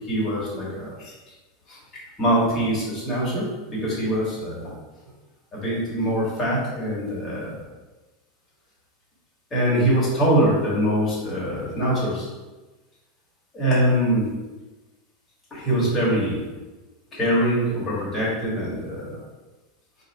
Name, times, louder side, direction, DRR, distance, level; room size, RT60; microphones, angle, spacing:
voice 1, 0.1-1.1 1.7-1.8 2.2-4.7 5.5-7.5 9.5-12.3 13.5-14.3 15.5-16.4 17.1-19.2, right 1 dB, 10° left, -7 dB, 1.3 m, -23 dB
4.0 x 2.6 x 4.0 m, 1.2 s
supercardioid pair, 180°, 0 cm